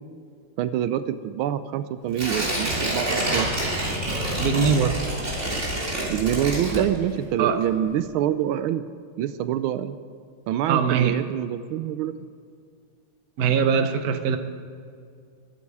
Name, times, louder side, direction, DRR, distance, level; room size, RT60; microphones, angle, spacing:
voice 1, 0.6-3.5 6.1-8.9 9.2-10.0 10.5-12.2, right 11 dB, 85° right, 12 dB, 1.4 m, -26 dB
Tearing, 2.1-7.3 7.6-7.7, right 1 dB, 35° right, 3.4 m, -27 dB
voice 2, 4.4-5.0 6.7-6.9 7.4-7.6 10.7-11.1 13.4-14.4, right 7 dB, 55° right, 8 dB, 1.2 m, -21 dB
23.0 x 8.5 x 4.8 m, 2.3 s
omnidirectional pair, 2.3 m